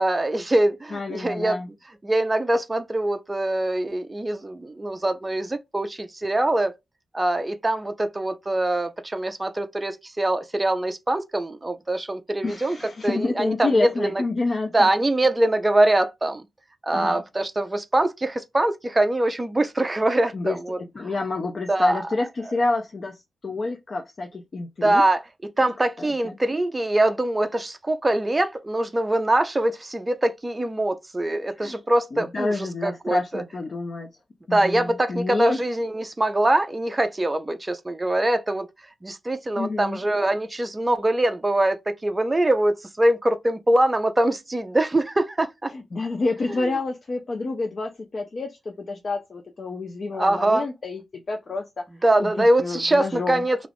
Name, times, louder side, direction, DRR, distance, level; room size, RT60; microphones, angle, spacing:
voice 1, 0.0-1.6 2.0-6.7 7.1-12.8 13.0-14.2 14.7-16.5 16.8-20.8 21.7-22.0 24.8-25.2 25.6-33.4 34.5-38.7 39.0-45.7 46.5-46.7 50.2-50.7 52.0-53.6, right 1 dB, 20° right, 0.4 m, -23 dB
voice 2, 0.9-1.7 12.4-14.9 16.9-17.2 20.3-25.0 26.0-26.4 31.6-31.8 32.1-34.1 34.5-35.6 39.6-40.0 45.7-51.8 52.2-53.4, left 3 dB, 45° left, 0.5 m, -28 dB
2.4 x 2.3 x 3.3 m
cardioid pair, 95°, 0 cm